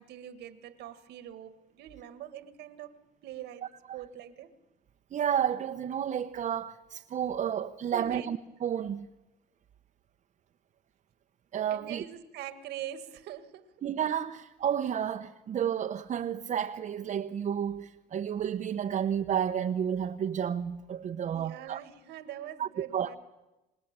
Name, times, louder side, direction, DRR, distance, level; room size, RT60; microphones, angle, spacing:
voice 1, 0.0-4.5 7.9-8.3 11.7-13.7 21.3-23.2, right 11 dB, 80° right, 1.8 m, -43 dB
voice 2, 5.1-9.1 11.5-12.0 13.8-21.8 22.6-23.2, right 9 dB, 45° right, 0.9 m, -31 dB
26.5 x 19.5 x 8.9 m
cardioid pair, 110°, 17 cm